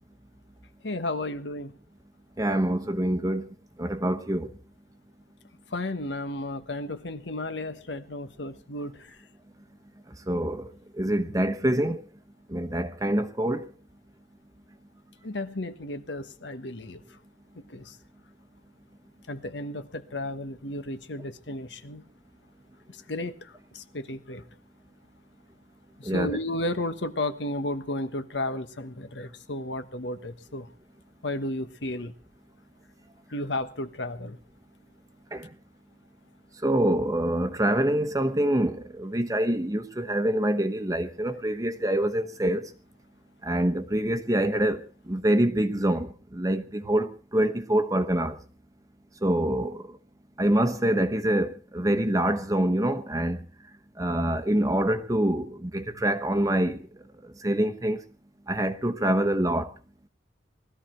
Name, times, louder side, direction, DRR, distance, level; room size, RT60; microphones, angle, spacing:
voice 1, 0.8-1.7 5.7-9.1 15.2-17.0 17.7-18.0 19.3-22.0 23.1-24.4 26.0-30.7 31.2-32.1 33.3-34.4, left 1 dB, 70° left, 1.4 m, -33 dB
voice 2, 2.4-3.5 3.8-4.5 10.3-10.7 11.0-12.0 12.5-13.6 26.0-26.4 35.3-35.5 36.6-42.7 43.4-48.4 49.2-49.8 50.4-53.4 54.0-56.8 57.4-58.0 58.5-59.7, right 1 dB, 20° right, 1.0 m, -25 dB
20.0 x 14.0 x 4.5 m
head